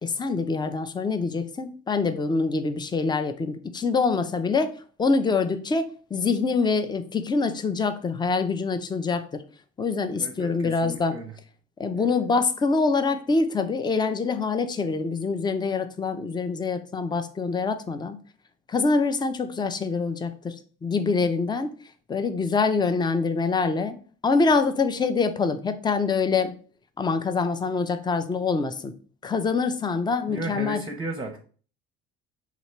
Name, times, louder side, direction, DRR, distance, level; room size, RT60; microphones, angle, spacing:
voice 1, 0.0-9.4 9.8-11.2 11.8-18.2 18.7-20.6 20.8-21.7 22.1-24.0 24.2-26.5 27.0-28.9 29.2-30.8, left 4 dB, 15° left, 9 dB, 0.5 m, -25 dB
voice 2, 10.2-11.3 30.3-31.4, right 2 dB, 15° right, 4 dB, 0.7 m, -34 dB
3.0 x 2.9 x 4.4 m, 0.41 s
supercardioid pair, 75°, 32 cm